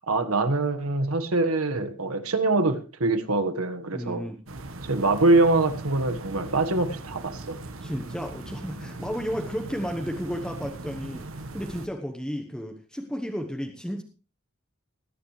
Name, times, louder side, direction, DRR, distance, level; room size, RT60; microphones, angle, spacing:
voice 1, 0.1-4.2 4.9-7.6, right 2 dB, 85° right, 8 dB, 1.5 m, -24 dB
voice 2, 3.9-4.4 7.8-14.0, equal, 5° left, 3 dB, 1.1 m, -33 dB
sound 1, 4.5-11.9, right 2 dB, 65° right, 1.3 m, -39 dB
19.5 x 10.5 x 3.3 m, 0.34 s
head